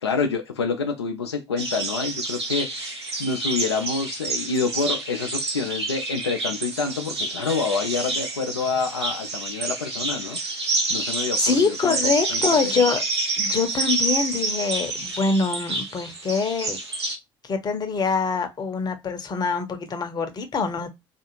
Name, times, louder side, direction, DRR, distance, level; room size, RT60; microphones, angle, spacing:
voice 1, 0.0-11.9 12.3-12.7, left 4 dB, 80° left, 0.4 m, -27 dB
sound 1, 1.6-17.2, right 3 dB, 80° right, 0.7 m, -28 dB
voice 2, 11.4-13.0 13.4-16.8 17.4-20.9, left 4 dB, 30° left, 0.7 m, -24 dB
2.5 x 2.4 x 3.0 m
figure-of-eight pair, 55°, 14 cm